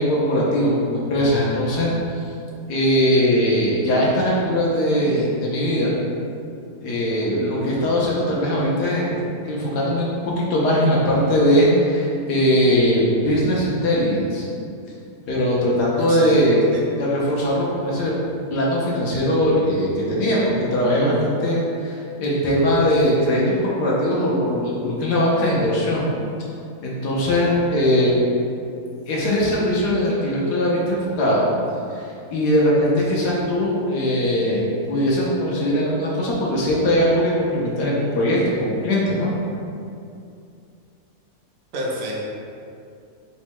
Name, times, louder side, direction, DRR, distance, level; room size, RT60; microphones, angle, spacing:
voice 1, 0.0-1.9 2.7-5.9 6.8-9.2 9.4-10.1 10.4-14.5 15.3-16.6 17.0-18.1 18.5-26.1 26.8-28.1 29.1-31.5 31.9-32.0 32.3-39.3, equal, 80° left, -5 dB, 1.3 m, -20 dB
voice 2, 16.0-16.5 16.7-16.8 41.7-42.2, right 1 dB, 65° right, -3 dB, 1.1 m, -29 dB
4.0 x 2.2 x 4.5 m, 2.5 s
omnidirectional pair, 1.7 m